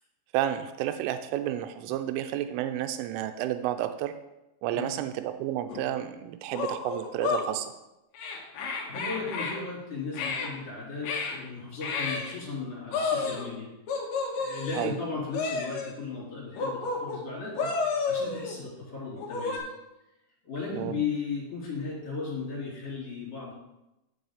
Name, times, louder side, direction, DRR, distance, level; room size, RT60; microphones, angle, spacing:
voice 1, 0.3-4.1 4.6-7.7 14.7-14.9 20.7-21.0, right 12 dB, 90° right, 9 dB, 3.1 m, -31 dB
sound 1, 5.7-5.8 6.5-7.5 8.1-9.6 10.1-10.5 11.0-11.4 11.8-12.3 12.9-13.5 13.9-14.9 15.3-15.9 16.5-17.2 17.5-18.6 19.2-19.6, left 4 dB, 75° left, 1.9 m, -31 dB
voice 2, 8.8-13.7 14.3-17.7 18.1-19.6 20.4-23.5, left 4 dB, 35° left, -6 dB, 4.1 m, -36 dB
8.0 x 7.0 x 5.0 m, 0.94 s
omnidirectional pair, 5.6 m